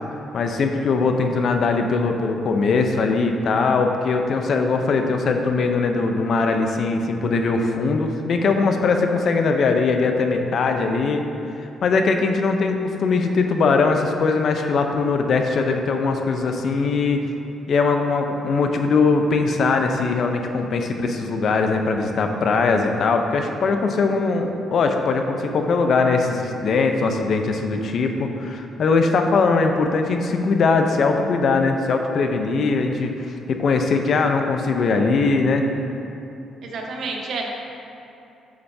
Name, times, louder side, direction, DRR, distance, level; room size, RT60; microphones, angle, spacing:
voice 1, 0.3-11.2 11.6-17.2 17.7-33.1 33.5-35.6, left 4 dB, 60° left, 5 dB, 0.6 m, -21 dB
voice 2, 36.6-37.5, right 3 dB, 70° right, 0 dB, 1.1 m, -29 dB
8.8 x 6.8 x 2.7 m, 2.8 s
cardioid pair, 90°, 0 cm